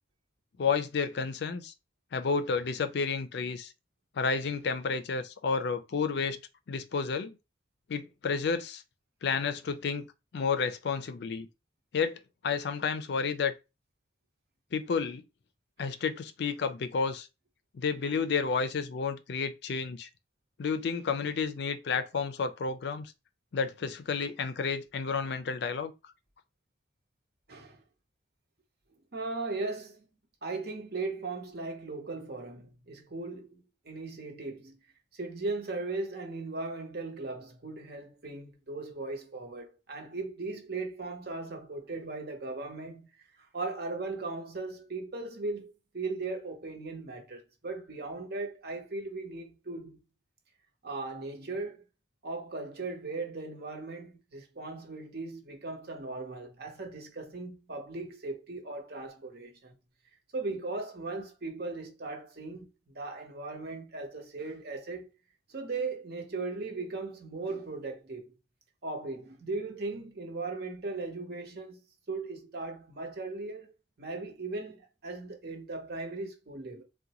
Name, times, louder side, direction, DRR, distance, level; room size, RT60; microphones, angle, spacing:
voice 1, 0.6-1.7 2.1-3.7 4.2-6.4 6.7-7.3 7.9-8.8 9.2-10.1 10.3-11.5 11.9-13.5 14.7-15.2 15.8-17.3 17.7-20.1 20.6-23.1 23.5-25.9, left 5 dB, 60° left, 0.4 m, -31 dB
voice 2, 27.5-27.8 29.1-30.0 30.4-34.8 35.1-43.1 43.5-50.0 50.8-51.8 52.2-59.7 60.3-62.7 62.9-65.1 65.5-68.2 68.8-71.8 72.1-76.8, right 3 dB, 60° right, 0.9 m, -38 dB
3.7 x 2.2 x 2.9 m
head